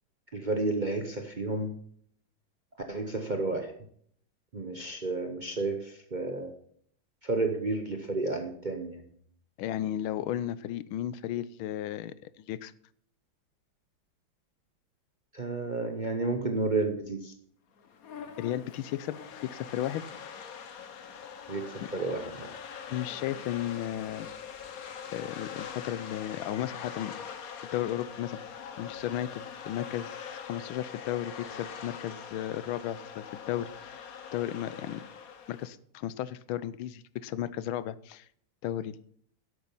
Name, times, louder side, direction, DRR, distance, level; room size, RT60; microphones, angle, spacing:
voice 1, 0.3-1.7 2.9-3.7 4.5-6.5 7.2-9.0 15.3-17.3 21.5-22.5, right 3 dB, 40° right, 4 dB, 0.7 m, -31 dB
voice 2, 9.6-12.7 18.4-20.0 22.9-24.3 25.1-27.1 27.6-34.0 34.3-35.0 35.5-38.3 38.6-39.2, left 12 dB, 90° left, 17 dB, 1.5 m, -34 dB
sound 1, 17.8-35.7, left 7 dB, 55° left, 1.2 m, -43 dB
11.5 x 8.1 x 5.6 m, 0.63 s
omnidirectional pair, 2.2 m